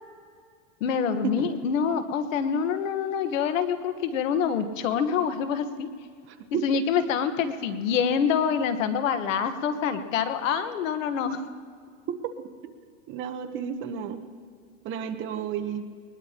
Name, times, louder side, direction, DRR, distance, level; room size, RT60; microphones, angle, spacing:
voice 1, 0.8-5.9 6.5-11.4, left 7 dB, 75° left, 9 dB, 1.4 m, -26 dB
voice 2, 6.3-6.7 13.1-14.2 14.8-15.9, right 8 dB, 30° right, 8 dB, 0.9 m, -32 dB
21.0 x 20.5 x 2.9 m, 2.1 s
supercardioid pair, 150°, 39 cm